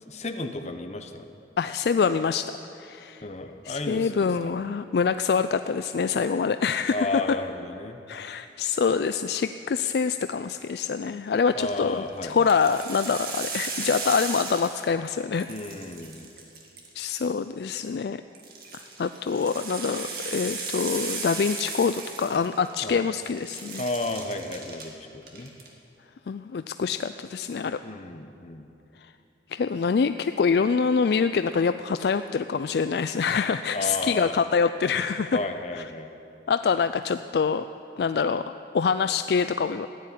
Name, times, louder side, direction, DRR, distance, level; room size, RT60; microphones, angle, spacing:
voice 1, 0.1-1.3 3.2-4.5 6.9-8.0 11.6-12.5 15.5-16.3 22.8-23.0 23.8-25.5 27.8-28.7 33.7-34.3 35.3-36.1, left 2 dB, 40° left, 6 dB, 1.0 m, -33 dB
voice 2, 1.6-3.3 3.6-7.4 8.1-15.5 17.0-18.2 18.7-23.8 26.3-27.8 29.0-29.1 29.5-35.4 35.7-35.9 36.5-37.6 38.0-39.9, left 5 dB, 60° left, 11 dB, 0.3 m, -25 dB
sound 1, 11.5-11.8 12.3-15.1 15.3-17.2 18.3-22.9 23.2-24.9 25.2-25.7, right 4 dB, 55° right, 2.2 m, -36 dB
15.0 x 9.7 x 10.0 m, 2.8 s
head